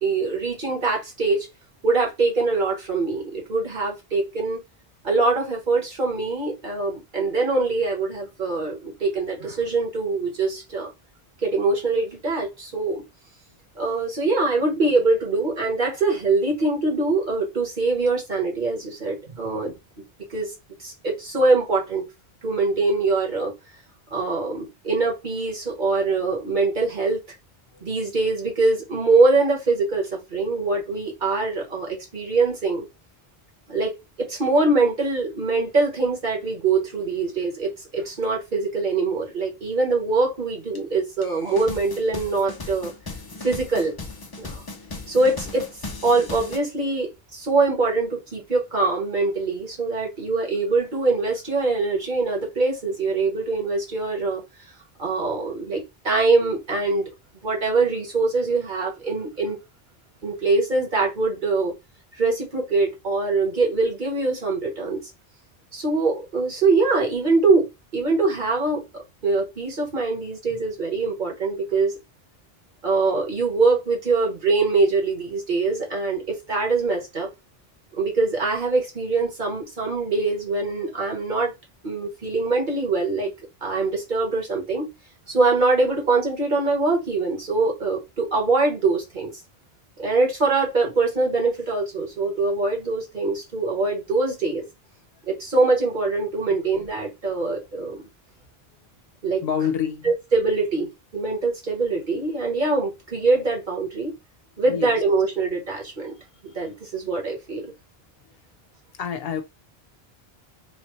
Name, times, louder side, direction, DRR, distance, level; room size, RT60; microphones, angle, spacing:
voice 1, 0.0-1.5 1.8-4.6 5.0-10.9 11.4-13.0 13.7-19.8 20.3-20.5 20.8-22.0 22.4-23.5 24.1-27.2 27.8-32.8 33.7-33.9 34.2-42.9 43.4-43.9 44.4-44.6 45.1-45.7 46.0-54.4 55.0-57.1 57.4-59.6 60.2-61.7 62.1-65.1 65.7-67.7 67.9-71.9 72.8-77.3 78.0-81.5 81.8-83.3 83.6-84.9 85.3-89.3 90.0-94.6 95.3-98.0 99.2-99.4 100.0-104.1 104.6-106.1 106.4-107.7, right 3 dB, 50° right, 1.3 m, -23 dB
sound 1, 40.7-40.8 41.2-46.6, left 3 dB, 35° left, 0.3 m, -37 dB
voice 2, 99.4-100.1 104.7-104.9 106.6-106.7 109.0-109.4, left 8 dB, 75° left, 0.8 m, -27 dB
3.1 x 2.7 x 3.1 m
omnidirectional pair, 1.0 m